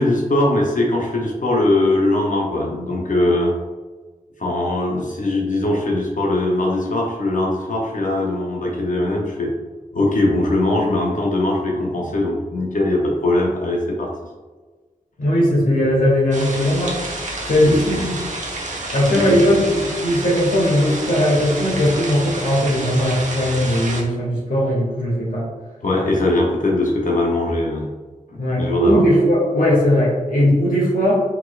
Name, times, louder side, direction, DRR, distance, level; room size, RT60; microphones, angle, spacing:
voice 1, 0.0-3.5 4.4-9.5 9.9-14.1 17.6-18.0 19.3-19.4 25.8-27.9 28.3-29.0, left 2 dB, 65° left, -2 dB, 0.7 m, -20 dB
voice 2, 15.2-17.0 17.4-18.1 18.9-25.5 28.3-31.2, equal, 80° left, -4 dB, 1.4 m, -18 dB
sound 1, 16.3-24.0, right 2 dB, 55° right, 0.9 m, -29 dB
4.3 x 4.2 x 2.4 m, 1.3 s
wide cardioid pair, 75°, 14 cm